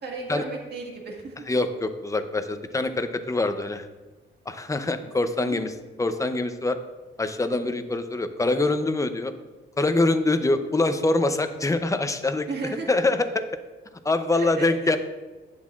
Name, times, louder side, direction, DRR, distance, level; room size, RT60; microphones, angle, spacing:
voice 1, 0.0-1.4 5.0-5.6 12.5-12.9 14.3-15.0, right 3 dB, 55° right, 0 dB, 1.8 m, -35 dB
voice 2, 1.5-3.9 4.5-5.7 6.0-6.8 7.2-9.3 9.8-12.5 12.9-13.4 14.0-15.0, left 2 dB, 15° left, 9 dB, 0.6 m, -24 dB
11.0 x 9.5 x 2.4 m, 1.2 s
wide cardioid pair, 145°, 21 cm